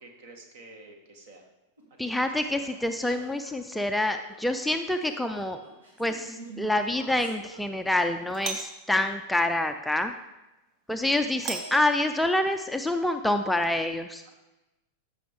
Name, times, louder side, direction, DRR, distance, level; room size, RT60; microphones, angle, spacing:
voice 1, 0.0-1.4 2.4-2.8, right 2 dB, 55° right, 4 dB, 1.8 m, -49 dB
sound 1, 1.8-8.1, right 2 dB, 75° right, 2.2 m, -47 dB
voice 2, 2.0-5.6 6.0-10.1 10.9-14.2, left 1 dB, 5° left, 6 dB, 0.4 m, -27 dB
Doorbell, 5.3-5.8 8.3-8.9 11.4-12.6, right 5 dB, 35° right, 0.9 m, -38 dB
14.0 x 6.2 x 3.5 m, 1.0 s
figure-of-eight pair, 90°, 0 cm